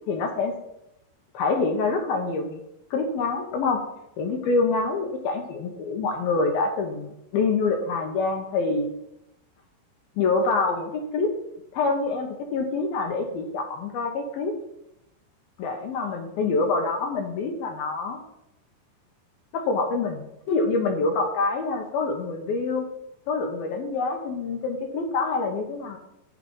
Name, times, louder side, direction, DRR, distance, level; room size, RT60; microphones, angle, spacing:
voice 1, 0.1-0.5 1.3-2.6 2.9-3.8 4.2-8.9 10.2-11.3 11.7-14.5 15.6-18.2 19.5-22.9 23.3-26.0, left 3 dB, 70° left, 4 dB, 2.5 m, -26 dB
9.9 x 7.9 x 5.3 m, 0.83 s
omnidirectional pair, 5.2 m